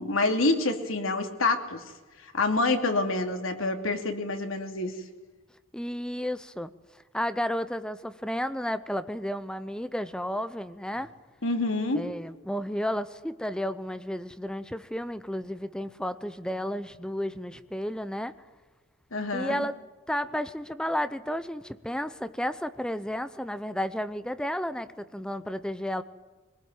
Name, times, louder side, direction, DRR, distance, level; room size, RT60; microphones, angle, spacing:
voice 1, 0.0-1.8 2.2-5.0 11.4-12.1 19.1-19.7, left 2 dB, 90° left, 5 dB, 2.8 m, -27 dB
voice 2, 5.7-6.7 7.1-11.1 11.9-18.3 19.3-19.7 20.1-26.0, equal, 5° left, 12 dB, 0.7 m, -32 dB
23.0 x 20.0 x 9.3 m, 1.2 s
head